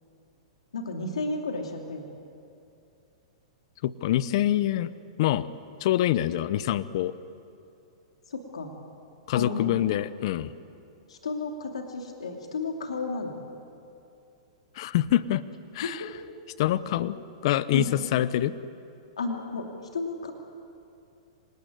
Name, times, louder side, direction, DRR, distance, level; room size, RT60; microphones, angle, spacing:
voice 1, 0.7-2.1 8.3-8.7 9.3-9.8 11.1-13.4 15.8-16.1 17.7-17.9 19.2-19.7 19.9-20.3, left 3 dB, 85° left, 2 dB, 2.8 m, -32 dB
voice 2, 3.8-4.9 5.2-5.5 5.8-7.1 9.3-10.5 14.8-15.4 15.7-16.1 16.6-17.2 17.4-18.5, left 13 dB, 55° left, 16 dB, 0.8 m, -25 dB
25.5 x 19.5 x 9.5 m, 2.6 s
hypercardioid pair, 125°, 3 cm